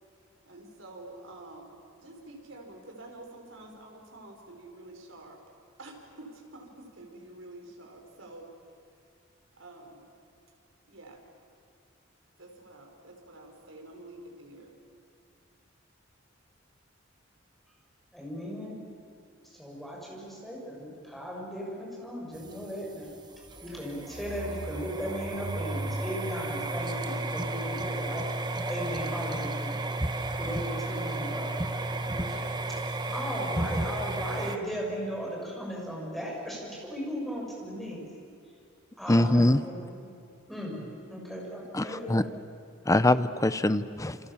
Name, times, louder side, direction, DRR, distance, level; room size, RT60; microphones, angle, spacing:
voice 1, 0.4-5.4 5.8-8.5 9.5-10.0 10.9-11.2 12.4-14.7, right 2 dB, 80° right, 2 dB, 5.0 m, -48 dB
voice 2, 18.1-18.8 19.5-23.1 23.6-28.3 28.6-29.8 30.3-31.8 32.0-32.8 33.1-38.0 39.0-40.1 40.5-42.4, equal, ahead, -3 dB, 6.8 m, -37 dB
sound 1, 22.3-34.6, right 2 dB, 20° right, 1.3 m, -33 dB
voice 3, 39.1-39.6 41.7-42.2 42.9-44.2, left 1 dB, 15° left, 13 dB, 0.7 m, -23 dB
28.5 x 27.0 x 7.2 m, 2.5 s
head